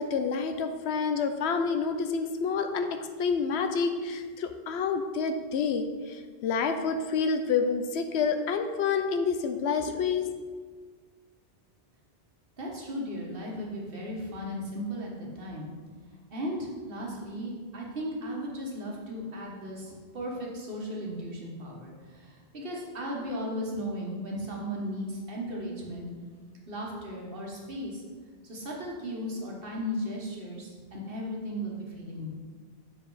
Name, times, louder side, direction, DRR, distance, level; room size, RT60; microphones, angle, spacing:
voice 1, 0.0-10.3, left 5 dB, 90° left, 7 dB, 0.8 m, -28 dB
voice 2, 12.6-15.7 16.3-26.1 26.7-28.0 28.4-32.3, equal, 60° right, -2 dB, 1.5 m, -36 dB
7.0 x 4.9 x 3.9 m, 1.5 s
omnidirectional pair, 1.1 m